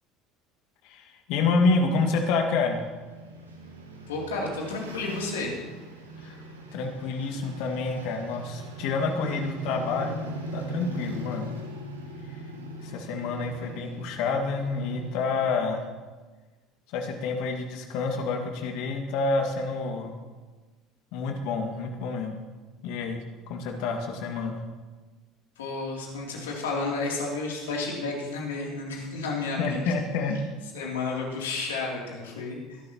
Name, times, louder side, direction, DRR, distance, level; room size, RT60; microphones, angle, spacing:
voice 1, 0.8-2.8 6.2-6.4 6.7-10.2 10.5-11.5 12.8-15.8 16.9-20.2 21.1-22.4 22.8-24.6 29.6-30.4, left 4 dB, 60° left, 3 dB, 2.1 m, -28 dB
sound 1, 1.5-15.6, equal, 85° right, 1.7 m, -40 dB
voice 2, 4.1-5.5 25.6-29.9 30.7-32.8, left 3 dB, 75° left, -2 dB, 3.1 m, -31 dB
21.5 x 11.5 x 3.0 m, 1.3 s
figure-of-eight pair, 65°, 0 cm